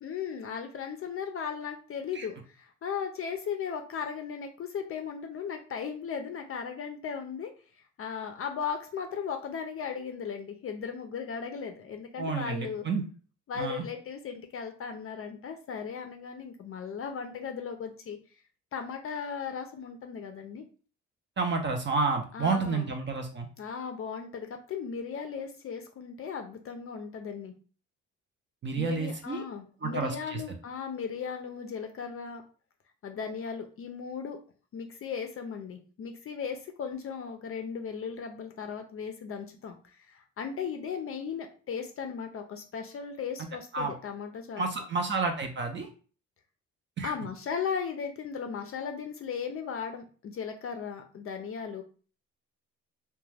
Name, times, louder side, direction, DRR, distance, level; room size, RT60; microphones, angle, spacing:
voice 1, 0.0-7.5 8.0-12.8 13.5-18.2 18.7-20.6 22.3-22.9 23.6-27.5 28.8-32.4 33.0-34.4 34.7-44.7 47.0-51.8, left 6 dB, 50° left, 5 dB, 0.4 m, -37 dB
voice 2, 12.2-13.0 13.6-13.8 21.4-23.5 28.6-29.4 29.8-30.4 43.7-43.9 44.6-45.9 47.0-47.1, right 4 dB, 40° right, 4 dB, 0.5 m, -30 dB
2.3 x 2.2 x 3.2 m, 0.39 s
cardioid pair, 90°, 30 cm